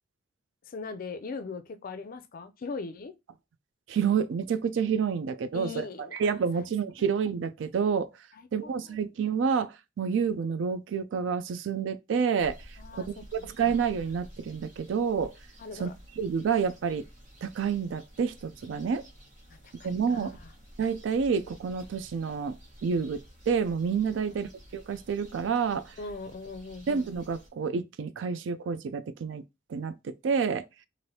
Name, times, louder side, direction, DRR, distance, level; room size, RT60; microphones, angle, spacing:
voice 1, 0.7-3.1 5.5-6.2 8.3-9.0 12.8-13.1 13.4-13.5 15.6-15.9 19.5-20.3 26.0-26.9, left 4 dB, 50° left, 0.4 m, -40 dB
voice 2, 3.9-5.7 6.2-8.1 8.5-12.6 12.9-15.3 15.7-15.9 16.2-17.1 17.4-19.0 19.8-20.4 20.8-25.9 26.9-29.4 29.7-30.7, right 6 dB, 80° right, 0.3 m, -29 dB
sound 1, 12.4-27.5, equal, 45° right, 1.2 m, -51 dB
3.2 x 2.5 x 2.7 m
head